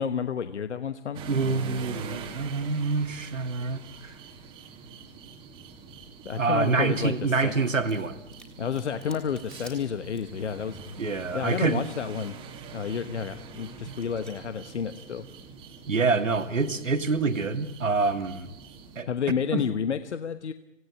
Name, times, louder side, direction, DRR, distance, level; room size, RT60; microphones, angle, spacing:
voice 1, 0.0-1.2 6.2-7.5 8.6-10.8 11.3-12.3 12.7-15.3 19.1-20.5, left 7 dB, 60° left, 11 dB, 1.3 m, -30 dB
sound 1, 1.1-19.0, right 5 dB, 15° right, 2.1 m, -44 dB
voice 2, 1.3-4.1 6.4-8.2 11.0-11.8 13.9-14.0 15.9-18.5 19.0-19.1 19.5-19.6, right 4 dB, 85° right, 7 dB, 2.5 m, -26 dB
sound 2, 7.9-8.1 8.3-10.5 10.8-10.9 11.0-12.3 12.5-12.9 13.5-13.7 14.0-14.3, equal, ahead, 3.4 m, -52 dB
26.5 x 17.5 x 8.6 m, 0.97 s
hypercardioid pair, 145°, 38 cm